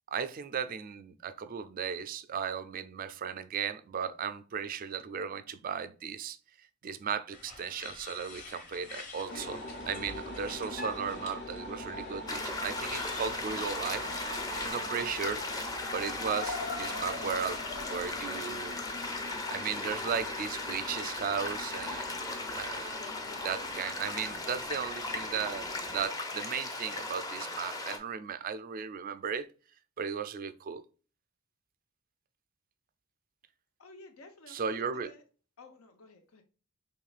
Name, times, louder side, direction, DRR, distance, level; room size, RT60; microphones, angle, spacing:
voice 1, 0.1-14.1 14.6-15.4 15.9-17.6 17.9-18.8 19.5-23.0 23.4-29.5 30.0-30.8 34.5-35.1, right 7 dB, 45° right, 0.4 m, -36 dB
sound 1, 7.3-14.7, left 3 dB, 35° left, 1.2 m, -47 dB
sound 2, 9.3-26.1, left 1 dB, 55° left, 1.1 m, -43 dB
sound 3, 12.3-28.0, left 2 dB, 20° left, 0.6 m, -37 dB
voice 2, 33.8-35.2 35.6-36.4, left 2 dB, 80° left, 0.8 m, -54 dB
4.8 x 3.1 x 2.3 m
head